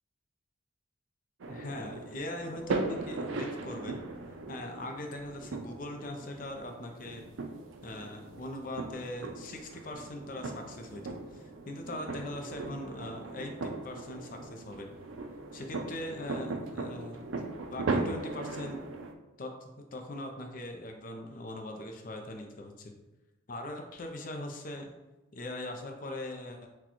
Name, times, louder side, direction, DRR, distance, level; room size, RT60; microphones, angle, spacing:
sound 1, 1.4-19.1, right 3 dB, 70° right, 0.4 m, -38 dB
voice 1, 1.5-4.0 4.3-7.3 7.8-14.9 15.5-17.3 17.7-18.9 19.4-22.9 23.5-24.9 25.3-26.7, left 1 dB, 40° left, 3 dB, 0.4 m, -41 dB
6.1 x 2.2 x 2.9 m, 1.0 s
head